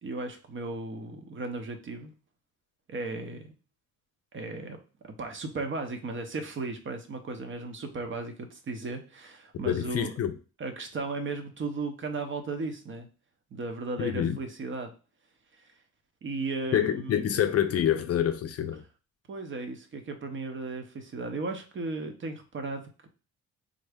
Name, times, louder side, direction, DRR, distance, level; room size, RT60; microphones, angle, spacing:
voice 1, 0.0-2.1 2.9-3.5 4.3-4.8 5.0-10.1 10.6-13.1 13.5-14.9 15.5-15.7 16.2-17.4 19.3-23.1, right 3 dB, 40° right, 0.7 m, -36 dB
voice 2, 9.6-10.3 14.0-14.4 16.7-18.8, left 10 dB, 55° left, 0.4 m, -27 dB
3.7 x 2.1 x 3.4 m
cardioid pair, 90°, 30 cm